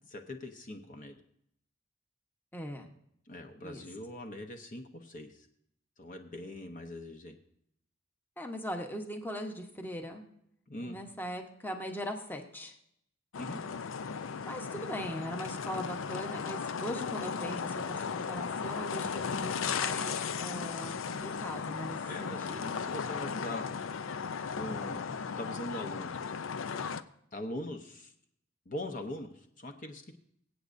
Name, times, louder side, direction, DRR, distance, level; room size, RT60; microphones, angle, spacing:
voice 1, 0.1-1.2 3.3-5.5 6.0-7.4 10.7-11.0 13.4-13.6 22.0-24.0 24.5-25.0 25.3-26.2 27.3-28.1 28.7-30.2, left 1 dB, 40° left, 5 dB, 0.9 m, -42 dB
voice 2, 2.5-2.9 3.6-3.8 8.4-10.3 10.8-12.7 14.4-22.8, equal, 10° left, 4 dB, 1.0 m, -40 dB
sound 1, 13.3-27.0, left 6 dB, 75° left, 0.5 m, -36 dB
24.0 x 8.3 x 2.6 m, 0.73 s
head